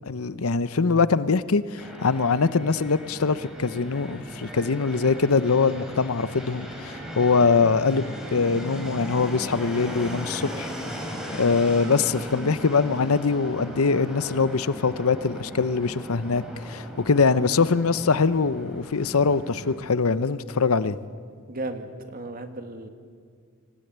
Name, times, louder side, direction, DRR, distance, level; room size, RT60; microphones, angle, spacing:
voice 1, 0.1-10.7 11.3-21.0, left 4 dB, 80° left, 0.8 m, -23 dB
Fixed-wing aircraft airplane, 1.8-19.8, equal, 5° right, 4.2 m, -38 dB
voice 2, 21.5-22.9, right 2 dB, 45° right, 2.0 m, -35 dB
25.0 x 17.0 x 9.4 m
head